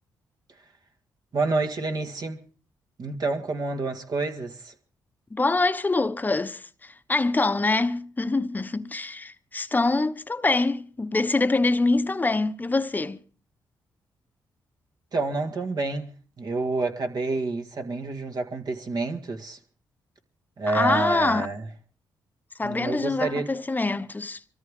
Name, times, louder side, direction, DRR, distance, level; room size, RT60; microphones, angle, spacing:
voice 1, 1.3-2.4 3.0-4.7 15.1-16.1 16.4-19.6 20.6-21.7 22.6-23.5, right 3 dB, 55° right, 2.1 m, -28 dB
voice 2, 5.3-13.2 20.7-21.5 22.6-24.4, left 3 dB, 20° left, 1.0 m, -25 dB
24.5 x 13.5 x 3.7 m
cardioid pair, 70°, 8 cm